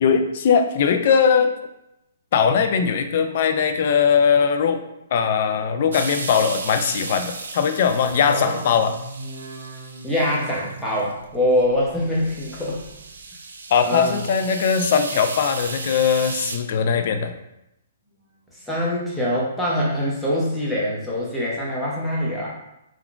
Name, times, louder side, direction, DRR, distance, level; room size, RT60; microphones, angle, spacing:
voice 1, 0.0-1.5 2.3-4.8 5.1-8.9 13.7-17.3, left 6 dB, 50° left, 7 dB, 0.3 m, -20 dB
sound 1, 5.9-11.1 11.6-11.7 12.1-16.6, right 3 dB, 85° right, 0.4 m, -35 dB
sound 2, 8.0-13.3 13.6-14.3 14.7-15.4 15.8-16.5 16.9-17.6 18.0-18.6 19.2-19.3, right 2 dB, 50° right, 1.0 m, -42 dB
voice 2, 10.0-12.8 13.8-14.2 18.7-22.5, left 1 dB, ahead, -7 dB, 0.8 m, -24 dB
3.6 x 2.3 x 2.3 m, 0.85 s
hypercardioid pair, 150°, 0 cm